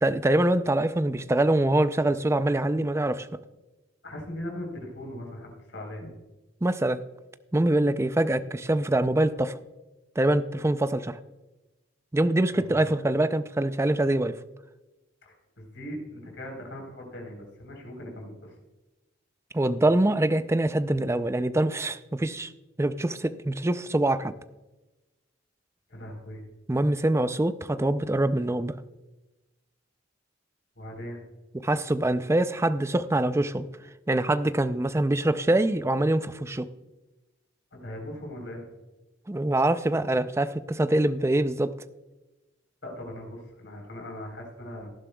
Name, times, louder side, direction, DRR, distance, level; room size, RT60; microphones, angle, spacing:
voice 1, 0.0-3.3 6.6-7.0 7.5-9.5 10.2-11.2 12.1-14.4 19.5-22.5 22.8-24.3 26.7-28.7 31.6-33.7 34.1-36.7 39.3-41.7, right 1 dB, 15° right, 12 dB, 0.4 m, -24 dB
voice 2, 4.0-6.1 12.5-12.8 15.3-18.5 25.9-26.4 30.8-31.2 37.7-38.7 42.8-44.9, left 1 dB, 65° left, 1 dB, 3.9 m, -39 dB
17.5 x 11.5 x 2.3 m, 1.1 s
head